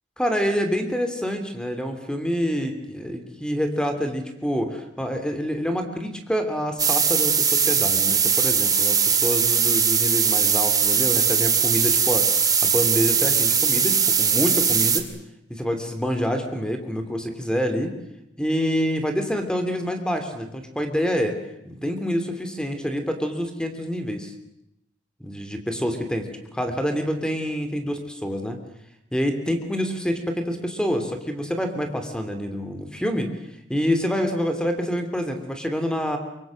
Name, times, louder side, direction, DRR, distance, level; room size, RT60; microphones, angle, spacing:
voice 1, 0.2-15.1 15.5-17.9 18.4-21.4 21.6-24.3 25.2-28.6 29.1-33.3 33.7-36.2, equal, 5° left, 7 dB, 3.0 m, -27 dB
sound 1, 6.8-15.0, right 6 dB, 20° right, 2.4 m, -20 dB
24.0 x 24.0 x 7.7 m, 0.80 s
head